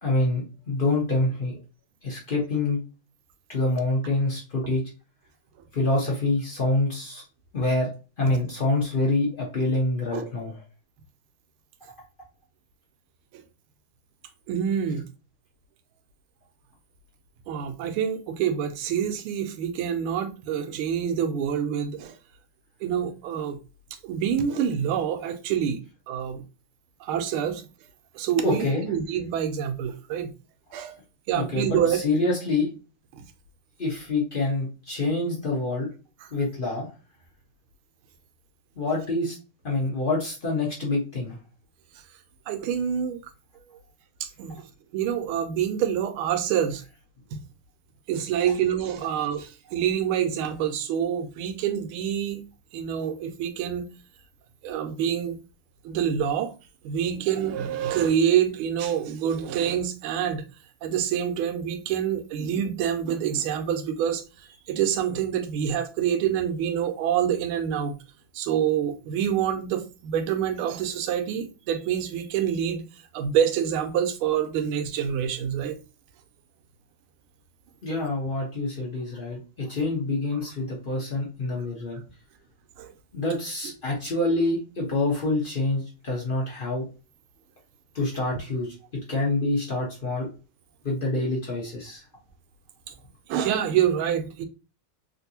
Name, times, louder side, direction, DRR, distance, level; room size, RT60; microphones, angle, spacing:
voice 1, 0.0-1.5 2.0-2.8 3.5-4.8 5.7-7.2 7.5-7.9 8.2-10.5 28.4-28.8 31.3-32.7 33.8-35.9 36.3-36.9 38.8-39.4 39.6-41.3 48.4-48.5 77.8-82.0 83.1-86.8 87.9-88.7 89.1-90.3 90.8-92.0, left 2 dB, 60° left, 0.5 m, -26 dB
voice 2, 14.5-15.0 17.5-22.2 22.8-23.6 24.0-25.8 26.1-26.4 27.0-27.6 28.1-30.3 30.7-31.0 31.3-32.0 33.1-33.2 42.5-43.2 44.2-44.6 44.9-46.8 47.3-47.4 48.1-52.4 52.7-53.9 54.6-55.4 55.8-56.5 56.8-60.4 60.8-68.0 68.3-72.8 73.1-75.8 82.8-82.9 93.3-94.4, right 9 dB, 85° right, 1.4 m, -26 dB
3.4 x 2.6 x 2.7 m
omnidirectional pair, 2.3 m